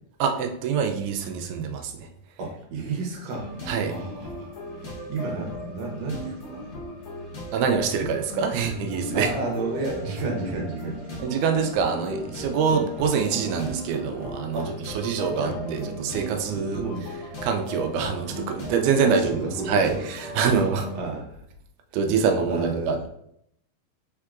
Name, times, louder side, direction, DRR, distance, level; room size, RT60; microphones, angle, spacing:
voice 1, 0.2-2.1 3.7-3.9 7.5-9.3 11.2-16.8 17.4-19.4 19.7-20.9 21.9-23.1, right 6 dB, 80° right, 5 dB, 2.0 m, -25 dB
voice 2, 2.4-3.5 3.9-4.5 4.8-6.7 9.1-11.2 12.7-12.8 14.5-15.1 15.3-15.9 16.3-17.1 19.0-20.0 20.4-20.6 20.9-21.4 22.5-23.1, right 3 dB, 65° right, 0 dB, 1.8 m, -32 dB
sound 1, 3.3-21.0, left 1 dB, 75° left, 1.0 m, -37 dB
4.6 x 4.4 x 2.4 m, 0.73 s
omnidirectional pair, 3.8 m